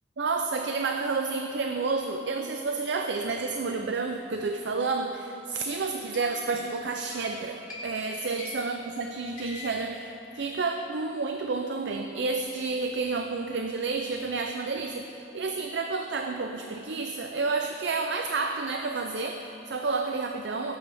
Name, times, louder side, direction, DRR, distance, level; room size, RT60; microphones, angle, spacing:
voice 1, 0.2-20.8, right 4 dB, 75° right, 5 dB, 0.5 m, -30 dB
sound 1, 6.1-10.9, left 3 dB, 45° left, 2.4 m, -45 dB
18.0 x 8.6 x 3.5 m, 3.0 s
head